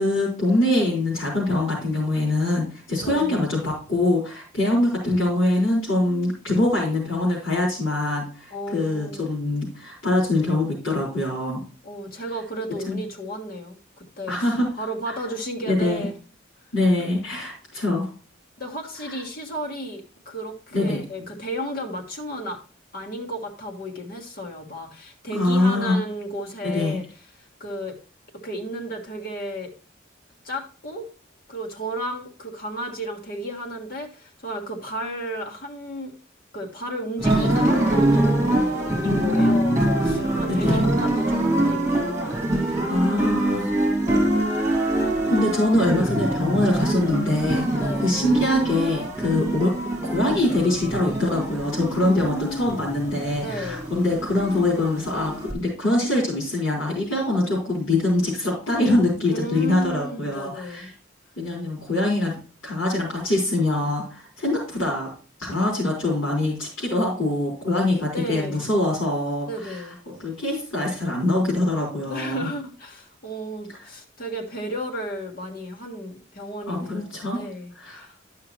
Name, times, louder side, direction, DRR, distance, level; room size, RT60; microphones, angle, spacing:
voice 1, 0.0-11.6 12.9-13.0 14.3-14.7 15.1-15.2 15.7-16.1 16.7-18.1 19.0-19.1 20.7-21.0 25.3-26.0 26.6-27.0 39.0-39.8 40.5-40.8 42.9-43.7 44.6-47.7 48.0-49.7 50.0-60.9 61.4-62.4 62.6-65.1 65.4-69.8 70.2-72.5 76.7-77.4 77.7-78.1, left 2 dB, 85° left, -7 dB, 3.9 m, -23 dB
voice 2, 3.0-3.5 8.5-9.4 11.8-14.5 14.8-16.1 17.0-17.1 18.6-22.6 22.9-27.0 27.6-28.0 28.4-29.7 30.4-31.1 31.5-36.1 36.5-44.4 47.8-48.2 52.0-52.8 53.4-53.8 59.3-60.9 67.7-68.6 69.5-70.0 72.0-78.1, right 1 dB, 45° left, 2 dB, 1.4 m, -33 dB
sound 1, 37.2-55.5, right 1 dB, 15° right, 2.6 m, -24 dB
11.5 x 5.8 x 3.0 m, 0.37 s
head